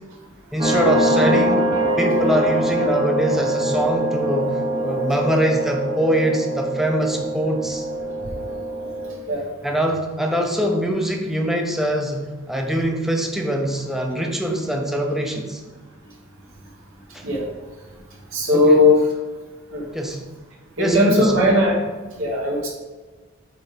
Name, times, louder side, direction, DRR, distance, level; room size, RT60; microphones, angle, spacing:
voice 1, 0.5-1.7 2.0-7.9 9.6-15.6 17.1-17.3 18.5-18.8 19.9-20.2 20.8-21.3, right 1 dB, ahead, 2 dB, 0.7 m, -23 dB
sound 1, 0.6-9.1, right 1 dB, 25° right, 1.2 m, -23 dB
voice 2, 18.3-19.0 19.7-19.9 20.8-21.8 22.2-22.7, left 1 dB, 65° right, -3 dB, 1.6 m, -17 dB
8.4 x 3.4 x 5.1 m, 1.3 s
head